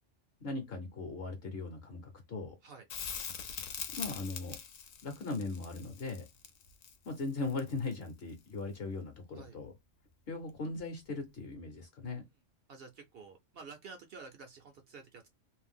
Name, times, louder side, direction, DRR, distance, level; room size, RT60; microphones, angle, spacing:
voice 1, 0.4-2.6 4.0-4.6 5.0-6.3 7.0-9.7 10.3-12.2, left 3 dB, 55° left, 0.9 m, -39 dB
Crackle, 2.9-8.0 10.8-10.9, left 8 dB, 85° left, 1.0 m, -43 dB
voice 2, 12.7-15.3, right 4 dB, 60° right, 0.7 m, -50 dB
2.6 x 2.1 x 3.3 m
omnidirectional pair, 1.3 m